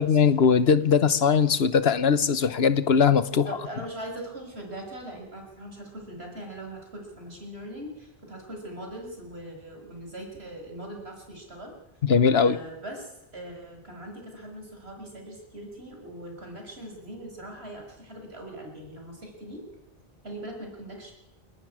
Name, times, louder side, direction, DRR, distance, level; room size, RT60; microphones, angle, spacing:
voice 1, 0.0-3.4 12.0-12.6, left 6 dB, 80° left, 13 dB, 1.3 m, -20 dB
voice 2, 3.3-11.7 12.3-19.6 20.2-21.1, right 1 dB, 90° right, 2 dB, 6.4 m, -41 dB
28.0 x 12.5 x 9.9 m, 0.90 s
omnidirectional pair, 1.0 m